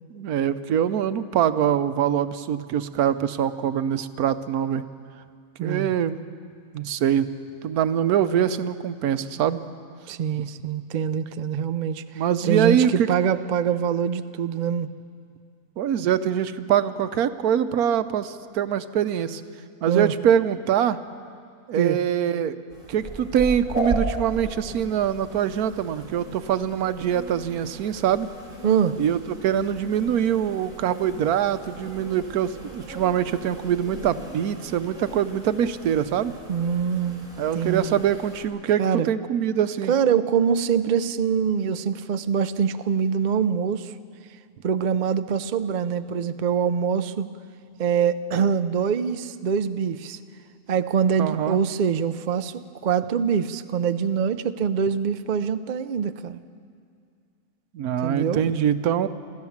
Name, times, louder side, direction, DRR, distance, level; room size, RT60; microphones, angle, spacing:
voice 1, 0.1-4.8 5.6-6.2 6.7-7.3 7.6-9.6 12.1-13.1 15.8-19.4 19.8-21.0 21.7-22.6 22.9-28.3 29.0-36.3 37.4-39.9 51.2-51.6 57.7-59.1, right 9 dB, 85° right, 12 dB, 1.2 m, -24 dB
voice 2, 5.6-5.9 10.1-12.0 12.4-14.9 19.9-20.1 21.7-22.0 28.6-29.0 36.5-37.3 37.5-38.0 38.8-39.1 39.9-43.9 44.6-47.3 47.8-50.2 50.7-52.5 52.8-56.4 58.0-58.4, right 7 dB, 60° right, 11 dB, 0.5 m, -24 dB
sound 1, 22.7-38.4, right 1 dB, 30° right, 4.4 m, -37 dB
26.0 x 14.0 x 7.2 m, 2.3 s
omnidirectional pair, 1.6 m